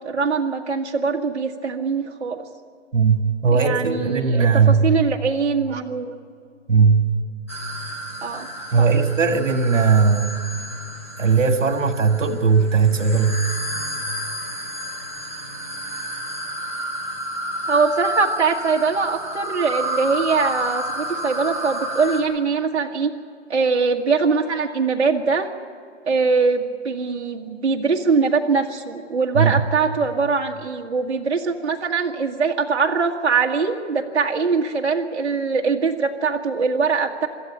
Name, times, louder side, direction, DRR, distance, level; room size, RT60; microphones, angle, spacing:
voice 1, 0.0-2.4 3.5-6.1 8.2-8.5 8.8-8.9 17.7-23.1 23.5-25.5 26.0-37.3, right 4 dB, 60° right, 0 dB, 1.7 m, -22 dB
voice 2, 2.9-4.9 6.7-7.1 8.7-10.5 11.2-13.5 29.3-29.5, right 5 dB, 80° right, 7 dB, 2.0 m, -18 dB
sound 1, 7.5-22.2, equal, 10° left, 0.9 m, -30 dB
26.0 x 13.5 x 8.7 m, 2.3 s
hypercardioid pair, 180°, 37 cm